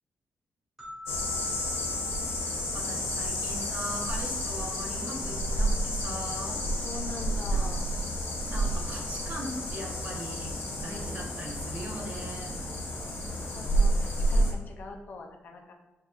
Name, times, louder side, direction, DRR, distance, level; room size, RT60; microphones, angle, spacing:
sound 1, 0.8-3.9, equal, 5° right, 1.3 m, -48 dB
sound 2, 1.1-14.5, equal, 85° left, 1.1 m, -30 dB
voice 1, 2.7-6.6 7.5-7.7 8.4-12.6, right 1 dB, 40° right, -1 dB, 1.0 m, -40 dB
voice 2, 6.8-7.9 10.8-11.3 13.0-15.7, left 3 dB, 45° left, 3 dB, 0.6 m, -43 dB
7.1 x 2.6 x 2.4 m, 1.1 s
wide cardioid pair, 180°, 4 cm